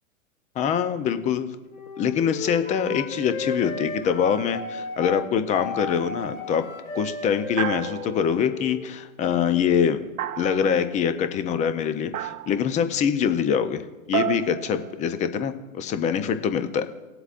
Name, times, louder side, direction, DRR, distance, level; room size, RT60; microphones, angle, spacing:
voice 1, 0.6-1.5 2.0-6.6 6.9-10.0 10.4-13.8 14.1-16.9, left 7 dB, 15° left, 10 dB, 0.6 m, -24 dB
Wind instrument woodwind instrument, 1.7-9.1, left 3 dB, 75° left, 2.6 m, -35 dB
sound 1, 5.8-6.3 7.6-8.5 10.2-10.9 12.1-12.7 14.1-15.4, right 11 dB, 85° right, 0.6 m, -32 dB
19.0 x 7.9 x 2.5 m, 1.1 s
hypercardioid pair, 120°, 43 cm